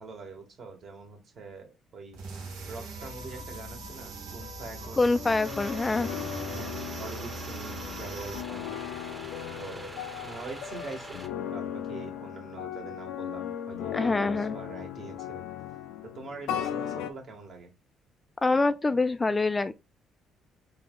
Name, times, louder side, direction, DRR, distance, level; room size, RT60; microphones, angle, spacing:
voice 1, 0.0-2.2 2.7-5.1 5.6-5.9 6.5-9.3 9.6-9.9 10.2-15.5 16.1-17.7, right 3 dB, 50° right, 2.0 m, -44 dB
sound 1, 2.1-8.4, right 4 dB, 85° right, 1.1 m, -41 dB
voice 2, 5.0-6.1 13.9-14.6 18.4-19.7, left 3 dB, 20° left, 0.3 m, -25 dB
sound 2, 5.1-17.1, left 10 dB, 90° left, 0.5 m, -37 dB
sound 3, 5.4-11.3, right 1 dB, 15° right, 0.9 m, -44 dB
3.9 x 2.8 x 3.8 m
cardioid pair, 85°, 0 cm